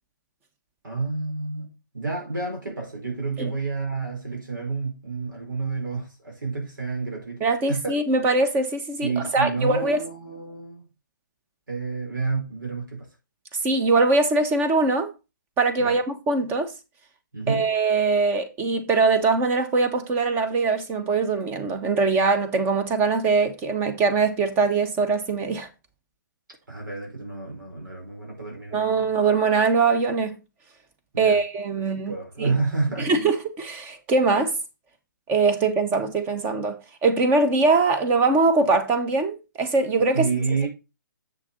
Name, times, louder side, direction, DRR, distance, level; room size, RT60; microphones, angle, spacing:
voice 1, 0.8-7.9 9.0-10.8 11.7-13.1 15.8-16.0 17.3-17.7 26.7-29.1 31.1-31.4 31.9-33.1 40.1-40.7, right 4 dB, 80° right, 4.9 m, -29 dB
voice 2, 7.4-10.0 13.6-15.1 15.6-16.7 17.5-25.7 28.7-30.3 31.2-32.6 33.0-34.6 35.3-36.8 37.0-40.3, right 3 dB, 20° right, 1.3 m, -22 dB
7.9 x 6.3 x 4.0 m
hypercardioid pair, 145°, 11 cm